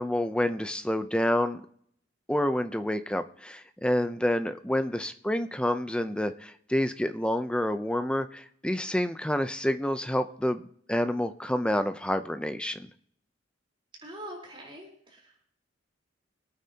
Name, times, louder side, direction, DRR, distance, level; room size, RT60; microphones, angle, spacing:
voice 1, 0.0-1.6 2.3-12.9, left 1 dB, 5° left, 10 dB, 0.6 m, -28 dB
voice 2, 14.0-15.4, right 1 dB, 25° right, -2 dB, 3.9 m, -44 dB
24.0 x 9.1 x 2.9 m, 0.65 s
head